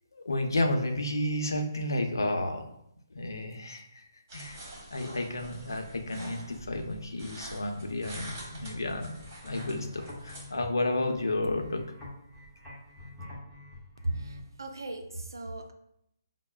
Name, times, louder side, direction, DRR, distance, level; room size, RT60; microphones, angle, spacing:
voice 1, 0.1-2.6 3.1-9.2 9.4-11.8, left 1 dB, 85° left, 3 dB, 0.6 m, -32 dB
sound 1, 4.3-10.5, right 1 dB, 45° right, 1.4 m, -46 dB
sound 2, 7.8-14.4, left 2 dB, 5° left, 1.0 m, -46 dB
voice 2, 14.2-15.7, right 2 dB, 90° right, 5 dB, 0.5 m, -40 dB
5.4 x 2.0 x 2.3 m, 0.76 s
hypercardioid pair, 150°, 2 cm